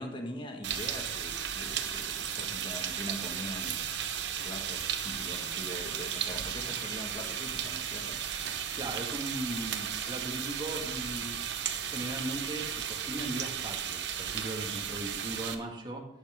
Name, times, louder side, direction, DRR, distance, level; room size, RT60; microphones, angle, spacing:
voice 1, 0.0-3.9 4.4-8.2, left 1 dB, 30° left, 3 dB, 1.6 m, -42 dB
sound 1, 0.6-15.5, right 8 dB, 85° right, 1.0 m, -35 dB
voice 2, 8.8-11.4 11.8-16.1, right 1 dB, 25° right, 0 dB, 2.0 m, -38 dB
11.5 x 9.2 x 3.6 m, 0.88 s
head